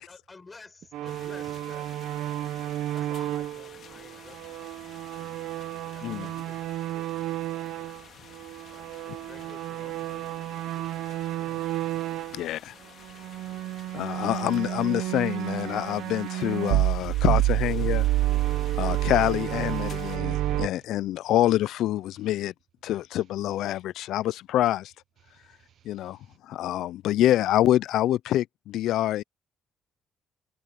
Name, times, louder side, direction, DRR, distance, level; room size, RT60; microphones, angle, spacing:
voice 1, 0.0-5.4 5.9-7.9 8.7-10.4 10.8-11.1 11.4-11.9, left 3 dB, 20° left, 6.8 m, -53 dB
sound 1, 0.9-8.0 8.3-12.4 13.0-20.7, right 15 dB, 90° right, 0.6 m, -30 dB
sound 2, 1.0-20.2, left 8 dB, 45° left, 3.4 m, -51 dB
voice 2, 5.2-5.9 8.3-8.7 12.3-12.4 13.1-14.2 18.4-18.8 20.2-20.7 25.2-26.4, right 10 dB, 45° right, 0.7 m, -62 dB
voice 3, 12.3-12.7 13.9-18.1 18.8-22.5 22.8-24.9 25.8-26.2 26.4-29.2, left 13 dB, 75° left, 0.3 m, -26 dB
cardioid pair, 170°, 0 cm